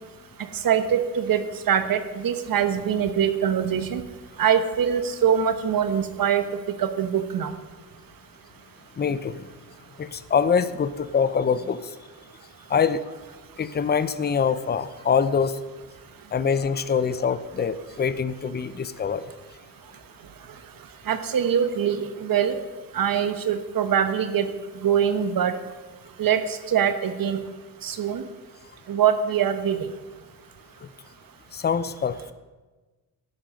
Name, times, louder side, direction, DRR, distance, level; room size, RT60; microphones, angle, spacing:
voice 1, 0.6-4.0 4.4-7.5 21.1-22.6 22.9-24.5 24.8-25.5 26.2-27.4 27.8-28.2 28.9-29.9, right 8 dB, 55° right, 10 dB, 1.1 m, -23 dB
voice 2, 9.0-9.4 10.0-11.9 12.7-13.0 13.6-15.6 16.3-19.3 31.5-32.3, left 6 dB, 25° left, 13 dB, 0.6 m, -24 dB
13.5 x 5.2 x 6.4 m, 1.3 s
cardioid pair, 75°, 41 cm